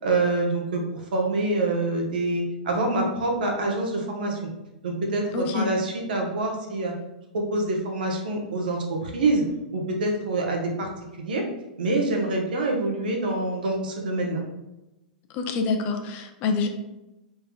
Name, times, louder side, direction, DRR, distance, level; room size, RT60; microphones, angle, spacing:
voice 1, 0.0-4.4 4.8-6.9 7.3-9.4 9.7-10.9 11.2-11.4 11.8-14.4, right 2 dB, 75° right, 1 dB, 0.9 m, -26 dB
voice 2, 5.3-5.7 15.3-16.7, left 4 dB, 40° left, 5 dB, 0.5 m, -26 dB
3.5 x 3.2 x 2.3 m, 0.96 s
hypercardioid pair, 115°, 5 cm